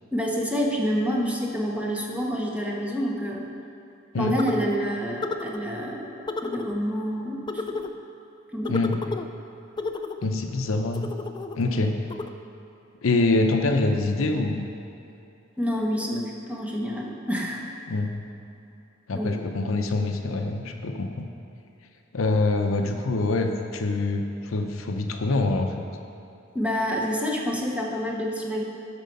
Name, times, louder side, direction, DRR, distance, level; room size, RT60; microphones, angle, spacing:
voice 1, 0.1-3.5 4.2-7.8 8.5-8.8 15.6-17.6 19.1-19.4 26.5-28.6, equal, 5° right, -2 dB, 0.9 m, -28 dB
sound 1, 4.4-4.8 5.2-5.6 6.3-6.7 7.5-7.9 8.6-9.3 9.8-10.3 10.9-11.6 12.1-12.3, left 3 dB, 20° left, 0.3 m, -32 dB
voice 2, 8.7-9.0 10.2-11.1 11.6-12.0 13.0-14.6 17.9-18.2 19.1-21.3 22.1-25.8, left 2 dB, 75° left, 4 dB, 0.7 m, -25 dB
12.0 x 4.6 x 5.3 m, 2.8 s
head